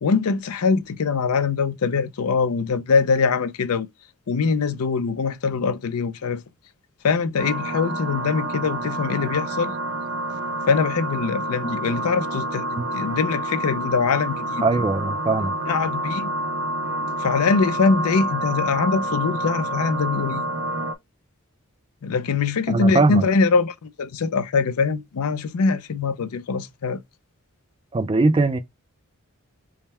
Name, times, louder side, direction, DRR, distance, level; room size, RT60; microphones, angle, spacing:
voice 1, 0.0-3.9 4.3-6.4 7.0-9.7 10.7-14.6 15.7-16.3 17.2-20.5 22.0-27.0, left 5 dB, 85° left, 0.5 m, -23 dB
sound 1, 7.4-20.9, right 1 dB, 60° right, 0.7 m, -28 dB
voice 2, 14.6-15.5 22.7-23.2 27.9-28.6, right 3 dB, 25° right, 0.3 m, -20 dB
3.6 x 2.1 x 4.2 m
head